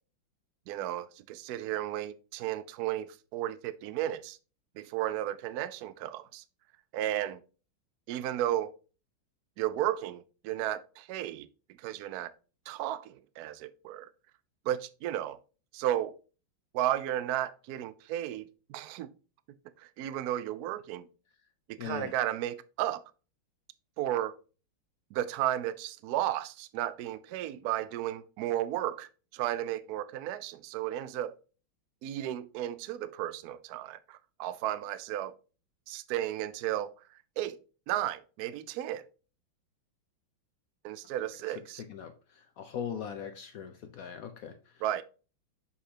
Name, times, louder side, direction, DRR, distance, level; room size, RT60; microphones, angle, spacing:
voice 1, 0.7-4.4 4.8-6.4 6.9-7.4 8.1-8.7 9.6-11.5 11.8-12.3 12.7-14.1 14.7-15.4 15.7-16.1 16.7-19.1 19.8-21.1 21.7-23.0 24.0-24.3 25.1-31.4 32.0-35.3 35.9-36.9 37.4-37.6 37.9-39.0 40.8-41.8 44.8-45.0, right 12 dB, 80° right, 0.8 m, -33 dB
voice 2, 21.8-22.1 41.5-45.0, left 8 dB, 75° left, 0.8 m, -41 dB
6.6 x 5.6 x 2.8 m
omnidirectional pair, 2.2 m